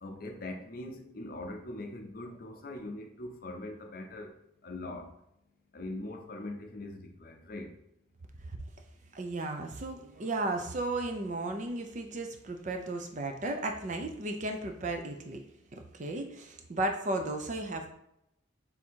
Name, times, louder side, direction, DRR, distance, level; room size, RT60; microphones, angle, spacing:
voice 1, 0.0-4.3 4.6-5.1 5.7-7.7, left 2 dB, 50° left, 3 dB, 0.6 m, -41 dB
voice 2, 9.1-15.4 15.7-17.9, right 2 dB, 40° right, 4 dB, 0.5 m, -34 dB
3.6 x 2.7 x 4.4 m, 0.81 s
head